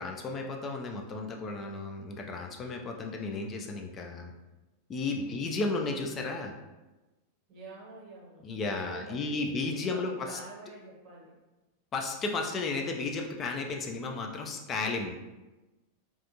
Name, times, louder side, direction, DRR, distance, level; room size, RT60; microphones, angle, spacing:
voice 1, 0.0-4.3 4.9-6.5 8.4-10.4 11.9-15.2, left 3 dB, 25° left, 2 dB, 0.3 m, -33 dB
voice 2, 5.0-5.4 7.5-11.4, right 2 dB, 40° right, -3 dB, 0.9 m, -48 dB
2.4 x 2.3 x 2.7 m, 1.1 s
figure-of-eight pair, 90°, 0 cm